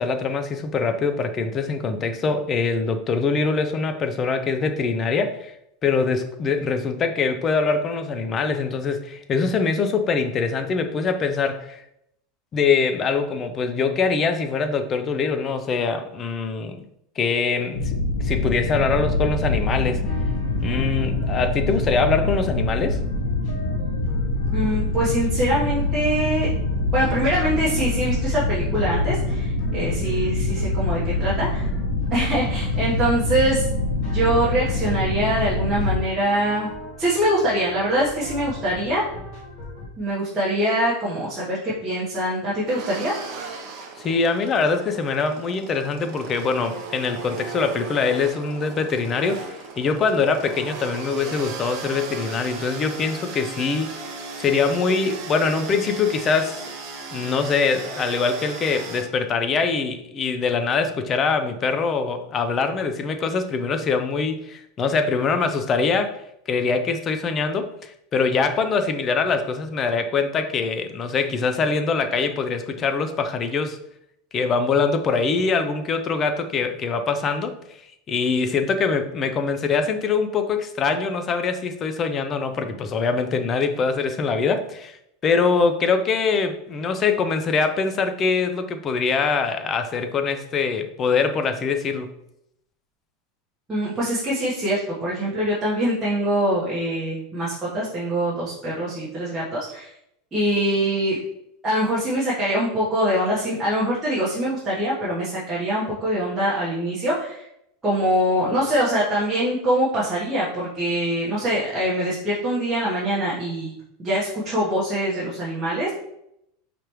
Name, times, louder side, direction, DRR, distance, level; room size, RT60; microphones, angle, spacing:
voice 1, 0.0-5.5 5.8-11.8 12.5-16.8 17.2-20.1 20.6-23.0 44.0-53.9 54.4-56.6 57.1-66.2 66.5-73.8 74.3-77.6 78.1-85.0 85.2-92.1, left 4 dB, 25° left, 8 dB, 0.4 m, -23 dB
sound 1, 17.7-36.0, left 2 dB, 80° left, 1.5 m, -25 dB
sound 2, 20.0-39.9, left 2 dB, 50° left, 1.1 m, -39 dB
voice 2, 24.5-26.5 26.9-31.7 32.1-33.7 34.1-36.7 37.0-39.0 40.0-43.2 93.7-99.9 100.3-101.2 101.6-107.4 107.8-115.9, right 1 dB, 10° right, -9 dB, 1.1 m, -24 dB
sound 3, 42.7-59.0, right 5 dB, 45° right, 0.7 m, -36 dB
4.9 x 3.3 x 3.0 m, 0.78 s
supercardioid pair, 160°, 0 cm